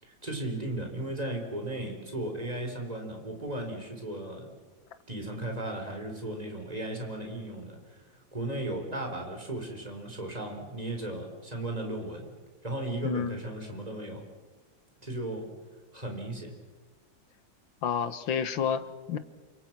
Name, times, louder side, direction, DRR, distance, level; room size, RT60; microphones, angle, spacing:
voice 1, 0.0-4.5 5.1-8.0 8.3-12.3 12.6-14.2 15.0-15.5 15.9-16.5, right 1 dB, 20° right, 3 dB, 4.8 m, -36 dB
voice 2, 13.0-13.4 17.8-19.2, left 7 dB, 75° left, 12 dB, 2.0 m, -30 dB
28.5 x 25.0 x 6.2 m, 1.3 s
omnidirectional pair, 2.2 m